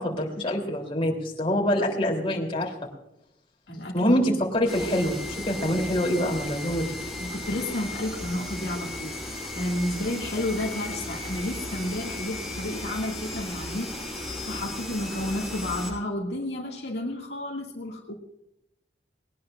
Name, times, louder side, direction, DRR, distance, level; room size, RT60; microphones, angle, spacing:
voice 1, 0.0-2.9 3.9-6.9, equal, 30° left, 0 dB, 3.4 m, -25 dB
voice 2, 3.7-4.1 7.2-18.1, left 1 dB, 70° left, -1 dB, 2.2 m, -31 dB
sound 1, 4.7-15.9, left 1 dB, ahead, 7.6 m, -35 dB
20.5 x 19.0 x 2.6 m, 0.84 s
head